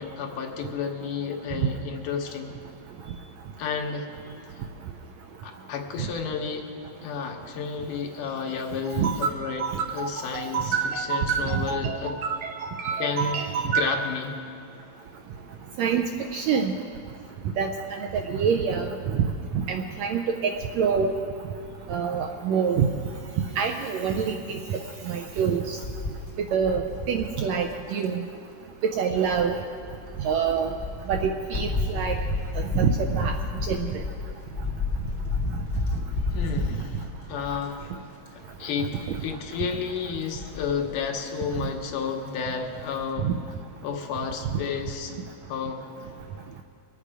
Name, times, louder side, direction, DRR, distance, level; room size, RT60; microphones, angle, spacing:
voice 1, 0.0-2.5 3.6-4.1 4.5-4.7 5.4-6.7 7.0-9.6 9.9-12.2 13.0-14.4 36.3-37.0 37.3-37.9 38.4-43.3 43.8-45.2 45.5-46.1, left 6 dB, 80° left, 2 dB, 2.6 m, -31 dB
voice 2, 9.6-10.1 10.3-13.9 15.8-16.0 16.3-16.7 17.6-19.2 19.5-21.2 21.9-22.8 23.6-25.8 26.5-28.2 28.8-29.6 30.2-30.7 31.1-32.2 32.6-33.4 33.7-33.9 39.1-39.2 43.2-43.3, right 6 dB, 80° right, 4 dB, 1.6 m, -26 dB
sound 1, 25.8-28.0 29.3-37.9 38.3-38.6 38.8-39.4 40.2-41.1 41.5-41.6 41.9-42.0, left 3 dB, 50° left, 1.2 m, -31 dB
23.0 x 8.4 x 4.9 m, 2.4 s
omnidirectional pair, 3.7 m